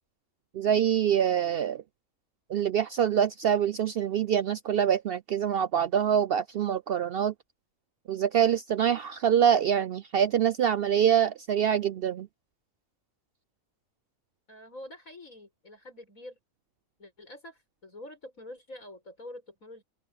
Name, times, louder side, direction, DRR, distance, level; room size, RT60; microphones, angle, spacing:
voice 1, 0.5-1.8 2.5-7.3 8.1-12.3, right 9 dB, 65° right, 0.6 m, -25 dB
voice 2, 14.5-16.4 17.0-19.8, left 1 dB, 85° left, 7.9 m, -46 dB
open air
omnidirectional pair, 1.4 m